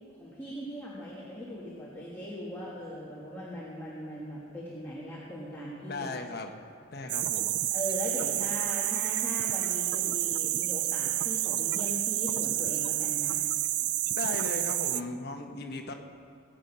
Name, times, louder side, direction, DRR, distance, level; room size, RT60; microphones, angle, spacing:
voice 1, 0.2-6.1 7.7-13.4, left 1 dB, 10° left, -7 dB, 1.9 m, -39 dB
voice 2, 5.9-6.5 6.9-7.5 14.1-15.9, left 3 dB, 50° left, 4 dB, 1.2 m, -37 dB
sound 1, 7.1-15.0, right 15 dB, 55° right, 0.3 m, -29 dB
19.0 x 9.2 x 5.6 m, 2.4 s
head